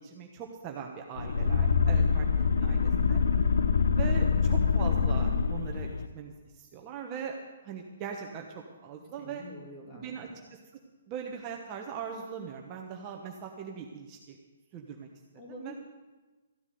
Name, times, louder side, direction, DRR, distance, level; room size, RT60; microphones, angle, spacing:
voice 1, 0.0-3.2 3.9-7.4 7.6-9.4 9.9-10.6 11.1-14.4 14.7-15.1 15.6-15.7, right 7 dB, 20° right, 1 dB, 1.1 m, -40 dB
sound 1, 1.2-6.1, left 5 dB, 80° left, 0.8 m, -25 dB
voice 2, 1.9-2.6 9.0-10.4 15.4-15.7, left 1 dB, 15° left, -1 dB, 2.7 m, -47 dB
14.0 x 7.1 x 9.4 m, 1.2 s
hypercardioid pair, 165°, 0 cm